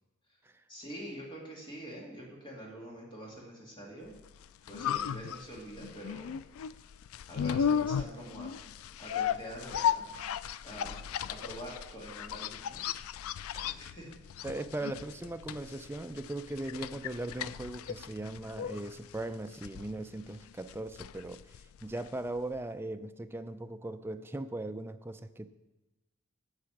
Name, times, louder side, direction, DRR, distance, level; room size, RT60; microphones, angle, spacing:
voice 1, 0.7-4.1 4.7-6.3 7.3-8.5 9.0-10.1 10.6-12.8 13.3-14.1, right 1 dB, 25° left, -3 dB, 2.5 m, -45 dB
sound 1, 4.3-22.3 22.6-22.7, left 8 dB, 80° left, 0.3 m, -36 dB
voice 2, 14.4-21.4 21.8-25.5, right 2 dB, 10° right, 9 dB, 0.4 m, -39 dB
9.7 x 7.1 x 5.8 m, 1.0 s
head